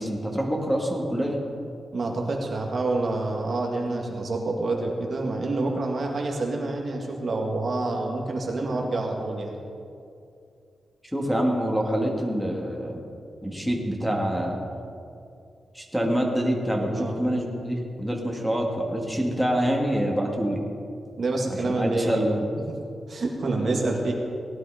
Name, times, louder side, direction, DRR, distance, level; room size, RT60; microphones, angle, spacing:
voice 1, 0.0-1.4 11.1-13.0 13.4-14.7 15.7-20.6 21.6-22.5, equal, ahead, -1 dB, 2.4 m, -26 dB
voice 2, 1.9-9.6 16.9-17.2 21.2-22.3 22.7-22.8 23.1-24.1, right 2 dB, 55° right, 0 dB, 2.1 m, -27 dB
18.5 x 10.5 x 5.1 m, 2.5 s
cardioid pair, 80°, 0 cm